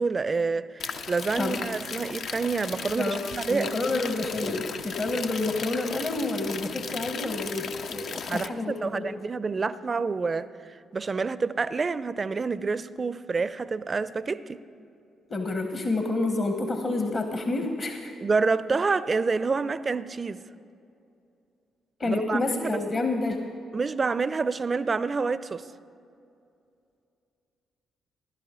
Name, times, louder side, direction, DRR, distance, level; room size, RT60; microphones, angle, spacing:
voice 1, 0.0-3.8 8.3-14.6 18.2-20.4 22.0-22.8 23.7-25.6, right 4 dB, 40° right, 0.4 m, -28 dB
sound 1, 0.8-8.5, left 6 dB, 65° left, 0.5 m, -36 dB
voice 2, 3.5-9.0 15.3-18.1 22.0-23.4, left 2 dB, 45° left, 1.1 m, -29 dB
15.5 x 11.5 x 3.7 m
hypercardioid pair, 50°, 0 cm